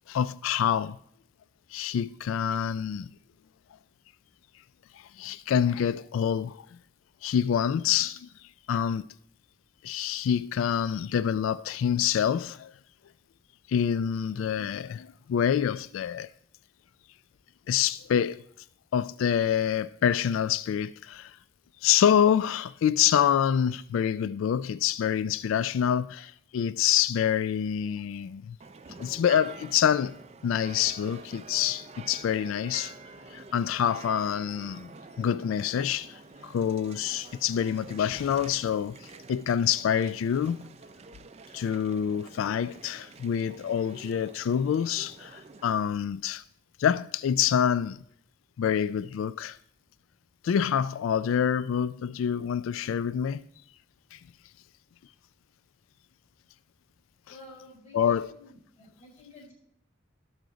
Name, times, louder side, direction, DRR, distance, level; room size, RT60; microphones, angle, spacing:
voice 1, 0.1-1.0 1.7-3.1 4.9-6.6 7.2-8.3 8.7-9.1 9.8-12.7 13.7-16.3 17.7-18.4 18.9-21.4 21.8-28.6 29.0-30.2 30.4-32.9 33.3-34.9 35.2-40.7 41.5-46.4 46.8-48.0 48.6-49.6 50.4-53.4 54.1-54.2 57.9-58.3, left 8 dB, 90° left, 0.3 m, -26 dB
sound 1, 28.6-45.7, right 4 dB, 30° right, 0.4 m, -48 dB
voice 2, 57.2-59.5, left 2 dB, 40° left, 4.8 m, -51 dB
16.5 x 6.4 x 3.9 m
head